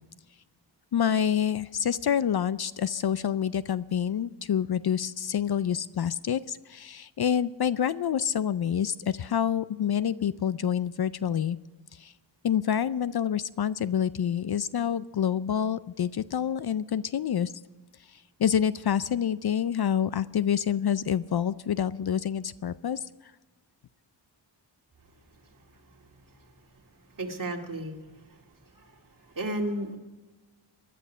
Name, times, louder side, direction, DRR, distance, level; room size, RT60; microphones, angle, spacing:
voice 1, 0.9-11.6 12.0-12.1 12.4-17.5 18.4-23.0, left 9 dB, 55° left, 16 dB, 0.5 m, -27 dB
voice 2, 27.1-28.4 28.7-30.0, right 1 dB, 45° right, 2 dB, 2.3 m, -34 dB
19.5 x 12.0 x 5.5 m, 1.2 s
wide cardioid pair, 95°, 46 cm